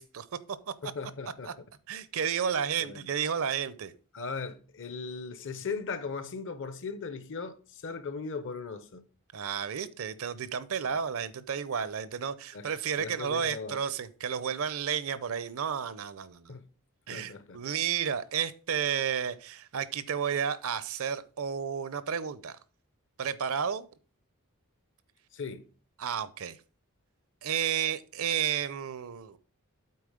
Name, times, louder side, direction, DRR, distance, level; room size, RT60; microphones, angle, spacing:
voice 1, 0.0-0.7 1.5-1.6 1.9-3.9 9.3-16.6 17.1-22.6 23.2-23.9 26.0-26.6 27.4-29.4, right 7 dB, 65° right, 0.6 m, -32 dB
voice 2, 0.8-1.5 2.8-3.1 4.1-9.0 12.5-12.7 13.0-13.8 16.5-16.6 17.1-17.6 25.3-25.7, left 4 dB, 55° left, 0.8 m, -38 dB
8.6 x 4.0 x 5.0 m
head